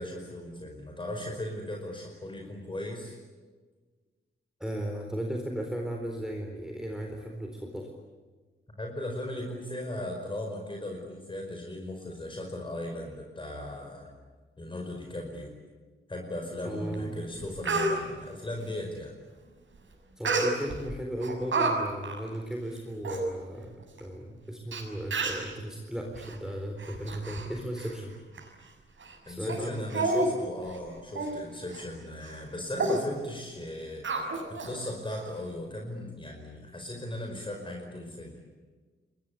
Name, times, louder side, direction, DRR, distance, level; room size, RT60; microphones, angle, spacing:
voice 1, 0.0-3.2 8.8-14.1 14.6-15.5 16.1-19.1 29.2-38.3, left 1 dB, 25° left, 1 dB, 5.0 m, -37 dB
voice 2, 4.6-7.9 16.6-17.1 20.2-23.7 24.0-28.2 29.3-29.8, right 1 dB, 5° right, 2 dB, 4.0 m, -36 dB
Speech, 16.9-17.0 17.4-17.9 20.3-20.8 21.2-21.7 22.0-22.2 22.8-22.9 23.0-23.2 24.0-24.1 24.7-24.8 25.1-25.5 26.2-26.4 26.8-27.5 27.8-27.9 28.4-28.5 29.0-29.2 29.5-29.6 29.9-30.3 30.6-30.8 31.2-31.4 31.7-31.8 32.2-32.4 32.8-33.0 34.0-34.7 35.1-35.2, right 3 dB, 65° right, 6.8 m, -29 dB
30.0 x 22.5 x 8.4 m, 1.4 s
wide cardioid pair, 160°, 21 cm